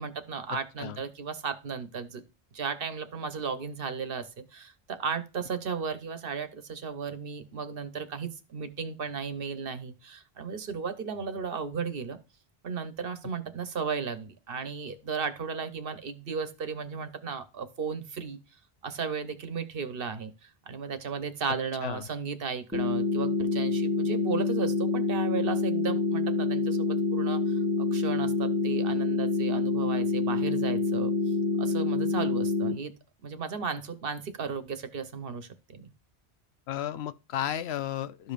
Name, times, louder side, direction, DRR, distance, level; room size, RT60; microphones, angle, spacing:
voice 1, 0.0-2.2 2.5-12.2 12.6-18.4 18.8-31.1 31.6-32.9 33.2-35.9, right 5 dB, 60° right, 1.1 m, -35 dB
sound 1, 22.7-32.7, left 3 dB, 5° right, 1.0 m, -27 dB
voice 2, 36.7-38.3, left 11 dB, 75° left, 0.8 m, -33 dB
13.0 x 5.3 x 2.4 m
omnidirectional pair, 1.1 m